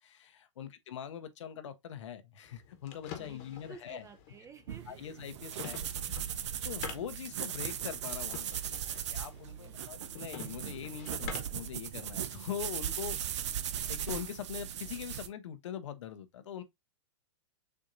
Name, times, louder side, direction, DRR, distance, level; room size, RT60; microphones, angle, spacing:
voice 1, 0.0-4.1 4.9-5.8 6.1-6.3 6.6-13.2 13.9-16.6, left 9 dB, 65° left, 0.7 m, -42 dB
sound 1, 2.4-11.7, left 8 dB, 40° left, 1.1 m, -48 dB
voice 2, 3.7-5.1 9.6-9.8, right 5 dB, 20° right, 0.7 m, -52 dB
sound 2, 4.7-15.3, right 9 dB, 60° right, 0.6 m, -38 dB
6.7 x 2.7 x 2.5 m
hypercardioid pair, 105°, 17 cm